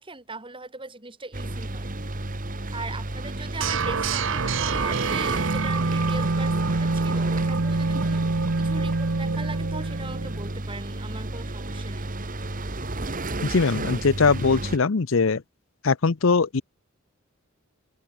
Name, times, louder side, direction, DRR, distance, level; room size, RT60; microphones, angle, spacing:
voice 1, 0.0-1.9 2.7-12.1, right 3 dB, 25° right, 4.1 m, -40 dB
sound 1, 1.3-14.8, right 2 dB, 40° right, 1.9 m, -32 dB
sound 2, 3.6-10.5, right 3 dB, 60° right, 1.0 m, -26 dB
voice 2, 13.4-15.4 15.8-16.6, left 4 dB, 65° left, 0.7 m, -21 dB
head